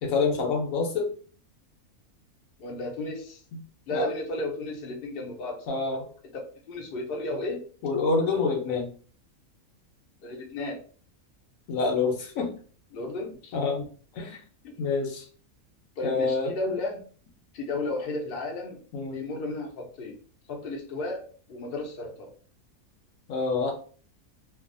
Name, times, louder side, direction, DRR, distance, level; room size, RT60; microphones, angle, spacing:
voice 1, 0.0-1.1 3.9-4.1 5.7-6.1 7.8-8.9 11.7-12.5 13.5-13.8 14.1-14.4 14.8-15.3 16.0-16.5 18.9-19.2 23.3-23.7, left 4 dB, 70° left, 1 dB, 1.1 m, -26 dB
voice 2, 2.6-3.4 3.9-5.8 6.7-7.6 10.2-10.8 12.9-13.5 14.6-14.8 16.0-17.0 17.5-18.8 19.1-20.2 20.5-22.3, left 2 dB, 55° left, 0 dB, 0.7 m, -33 dB
2.6 x 2.4 x 2.5 m, 0.43 s
omnidirectional pair, 1.5 m